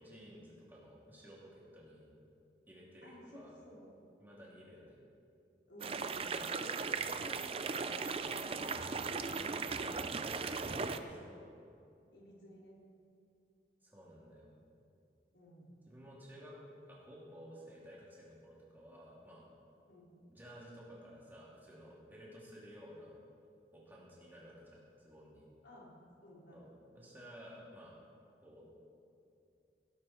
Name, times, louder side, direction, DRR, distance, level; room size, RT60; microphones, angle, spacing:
voice 1, 0.0-2.0 2.7-3.5 4.2-5.0 10.4-11.3 13.8-14.5 15.9-16.6 16.9-19.4 20.3-23.1 23.7-25.4 26.5-28.0 28.4-28.6, equal, 10° right, -5 dB, 3.0 m, -54 dB
voice 2, 3.0-3.9 5.7-6.5 7.0-8.8 10.9-11.3 12.1-12.8 15.3-15.8 19.8-20.1 25.6-26.0 26.2-26.7, equal, 85° left, -4 dB, 3.7 m, -56 dB
sound 1, 5.8-11.0, right 4 dB, 30° right, 0.5 m, -37 dB
17.0 x 12.5 x 4.4 m, 2.6 s
head